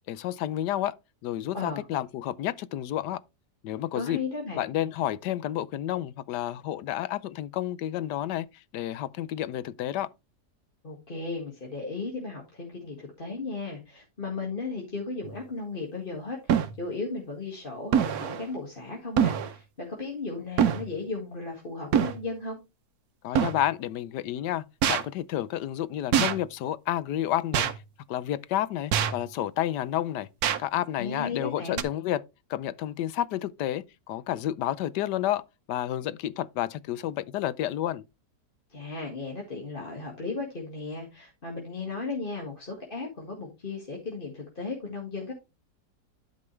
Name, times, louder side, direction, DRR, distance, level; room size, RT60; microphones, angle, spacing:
voice 1, 0.1-0.9 1.2-3.2 3.6-4.2 4.6-10.1 23.2-27.7 28.1-30.3 30.6-32.2 32.5-35.4 35.7-38.0, left 12 dB, 85° left, 1.3 m, -30 dB
voice 2, 1.5-1.9 3.9-4.7 10.8-22.6 31.0-31.8 38.7-45.3, left 3 dB, 30° left, 2.0 m, -35 dB
sound 1, 15.2-15.3 16.5-16.8 17.9-18.4 19.2-19.5 20.6-20.9 21.9-22.2 23.3-23.6 24.8-25.0 26.1-26.4 27.5-27.8 28.9-29.2 30.4-30.6 31.8-31.9, right 8 dB, 65° right, 1.3 m, -24 dB
12.0 x 5.4 x 3.2 m
omnidirectional pair, 1.8 m